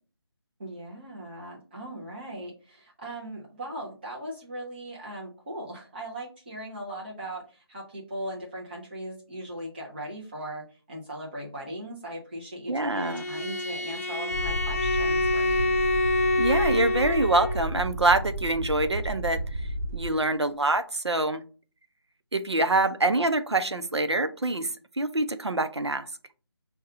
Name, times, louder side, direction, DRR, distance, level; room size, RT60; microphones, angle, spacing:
voice 1, 0.6-15.7 22.3-22.4, right 1 dB, 25° right, -4 dB, 0.6 m, -39 dB
voice 2, 12.7-13.2 16.4-19.7 19.9-21.4 22.3-24.7 25.0-26.1, right 2 dB, 75° right, 9 dB, 0.6 m, -25 dB
Bowed string instrument, 12.9-17.7, left 2 dB, 35° left, 0.5 m, -26 dB
sound 1, 14.3-20.1, right 2 dB, 40° right, 1.2 m, -32 dB
5.2 x 2.3 x 3.5 m, 0.37 s
figure-of-eight pair, 155°, 14 cm